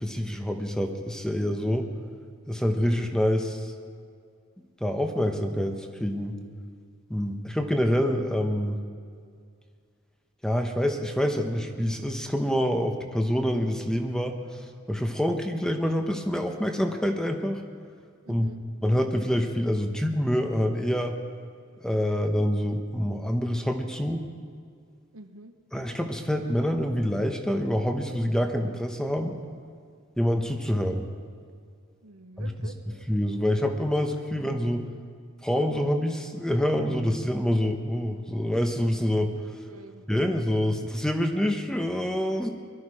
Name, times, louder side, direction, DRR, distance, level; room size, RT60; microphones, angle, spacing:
voice 1, 0.0-1.9 2.5-3.7 4.8-6.4 7.1-8.8 10.4-14.4 14.9-17.6 18.3-18.5 18.8-21.2 21.8-24.2 25.7-29.4 30.2-31.1 32.4-32.7 33.1-34.8 35.4-39.3 40.1-42.5, equal, 5° left, 4 dB, 0.9 m, -26 dB
voice 2, 18.2-18.6 25.1-25.5 32.0-33.1 39.7-40.0, right 2 dB, 90° right, 7 dB, 1.0 m, -46 dB
22.5 x 12.5 x 4.9 m, 2.2 s
head